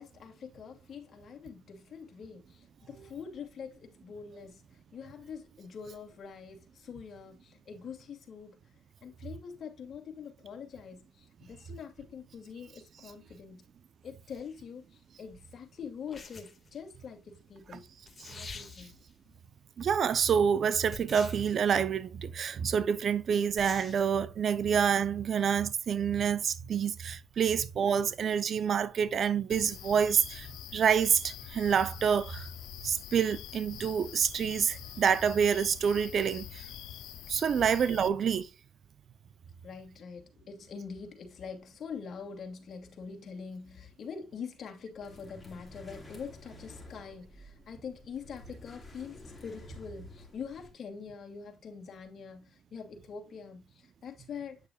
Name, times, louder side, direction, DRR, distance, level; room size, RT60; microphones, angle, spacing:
voice 1, 0.0-8.7 9.0-13.7 14.0-17.8 18.3-18.9 37.6-37.7 39.6-54.6, left 6 dB, 55° left, 2.5 m, -44 dB
sound 1, 14.3-14.5 16.1-16.8 17.7-17.8 18.1-19.1 20.9-21.6 23.6-24.1, left 4 dB, 35° left, 2.0 m, -46 dB
voice 2, 19.8-30.5 30.7-32.5 32.8-36.6 37.3-38.5, right 7 dB, 55° right, 0.7 m, -27 dB
sound 2, 29.5-38.1, left 12 dB, 85° left, 0.6 m, -45 dB
sound 3, 45.0-50.7, left 1 dB, 15° left, 4.7 m, -51 dB
9.2 x 6.7 x 2.4 m
cardioid pair, 90°, 0 cm